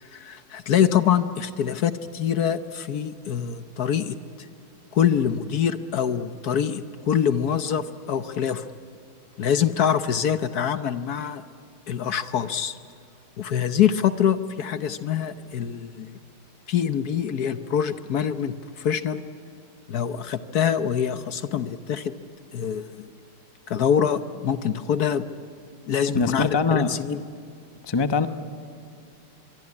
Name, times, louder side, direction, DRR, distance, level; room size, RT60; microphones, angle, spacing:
voice 1, 0.0-4.1 4.9-8.7 9.4-11.4 11.9-12.8 13.4-16.1 16.7-19.2 19.9-22.2 22.5-23.1 23.7-25.2 25.9-27.2, left 8 dB, 60° left, 12 dB, 1.1 m, -25 dB
voice 2, 26.1-26.9 27.8-28.3, left 4 dB, 40° left, 11 dB, 0.3 m, -22 dB
25.0 x 23.5 x 9.8 m, 2.5 s
omnidirectional pair, 2.3 m